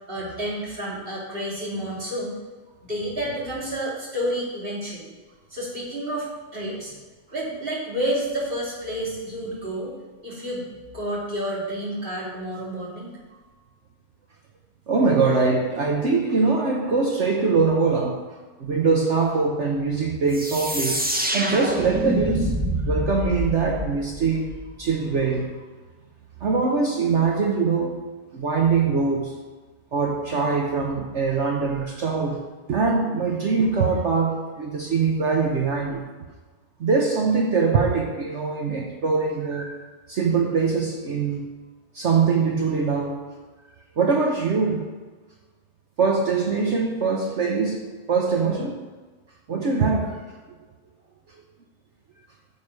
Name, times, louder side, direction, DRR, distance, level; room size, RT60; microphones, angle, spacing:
voice 1, 0.1-2.3 2.8-5.1 5.5-6.3 6.5-7.0 7.3-9.9 10.2-13.1, right 1 dB, 35° right, -6 dB, 3.0 m, -30 dB
voice 2, 14.9-18.2 18.6-21.1 21.3-22.6 22.8-25.5 26.4-28.0 28.3-29.4 29.9-32.4 32.7-36.0 36.8-39.8 40.1-41.5 41.9-43.2 44.0-44.9 46.0-48.8 49.5-50.4, right 4 dB, 55° right, 1 dB, 1.1 m, -23 dB
sound 1, 20.3-24.9, right 1 dB, 10° right, 0.4 m, -27 dB
9.6 x 7.0 x 4.8 m, 1.3 s
omnidirectional pair, 1.6 m